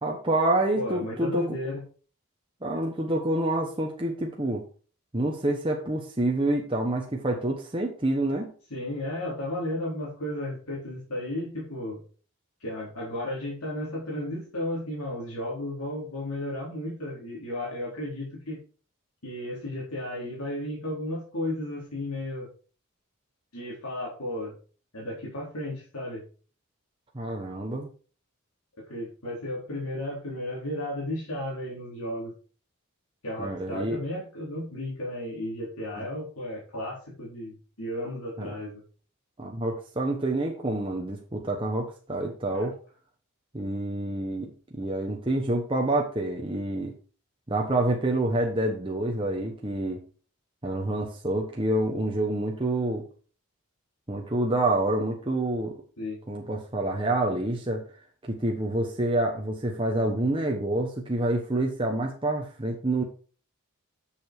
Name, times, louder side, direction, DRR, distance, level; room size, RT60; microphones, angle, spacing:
voice 1, 0.0-1.6 2.6-4.6 5.1-8.5 27.1-27.9 33.4-34.0 36.0-36.1 38.4-38.5 39.4-42.7 43.5-46.9 47.5-50.0 50.6-53.0 54.1-55.8 56.3-57.8 58.3-63.0, right 1 dB, 25° right, 0 dB, 1.1 m, -27 dB
voice 2, 0.8-1.8 8.7-12.0 12.6-18.6 19.2-22.5 23.5-24.6 24.9-26.2 28.9-32.3 33.2-38.8 42.5-42.7 56.0-56.2, left 1 dB, 80° left, -4 dB, 4.1 m, -34 dB
7.9 x 7.0 x 4.7 m, 0.38 s
head